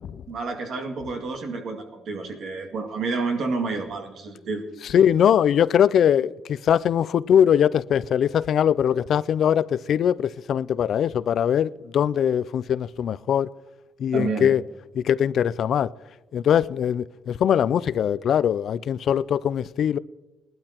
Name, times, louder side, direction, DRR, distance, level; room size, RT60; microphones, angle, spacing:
voice 1, 0.3-4.6 14.1-14.5, right 4 dB, 70° right, 2.2 m, -29 dB
voice 2, 4.9-13.5 14.0-14.6 15.0-16.0 16.3-20.0, left 9 dB, 65° left, 0.3 m, -21 dB
19.5 x 12.0 x 2.9 m
cardioid pair, 90°, 0 cm